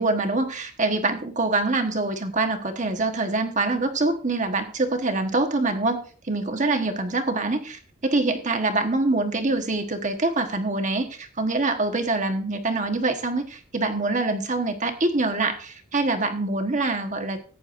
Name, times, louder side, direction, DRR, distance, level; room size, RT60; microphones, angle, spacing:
voice 1, 0.0-17.4, right 2 dB, 35° right, 6 dB, 1.3 m, -25 dB
14.5 x 9.5 x 2.6 m, 0.40 s
head